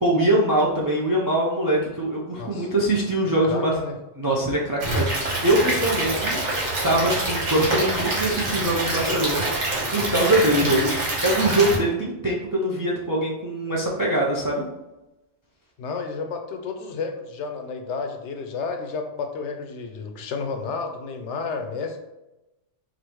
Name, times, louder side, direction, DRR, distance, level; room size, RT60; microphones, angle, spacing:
voice 1, 0.0-3.7 4.2-6.4 6.8-10.9 11.2-14.7, right 1 dB, 30° right, -3 dB, 0.4 m, -23 dB
voice 2, 2.4-2.7 3.4-4.0 15.8-22.0, left 4 dB, 75° left, 5 dB, 0.9 m, -31 dB
Stream / Liquid, 4.8-11.8, right 2 dB, 90° right, 1.6 m, -26 dB
5.0 x 2.3 x 3.0 m, 0.98 s
omnidirectional pair, 1.2 m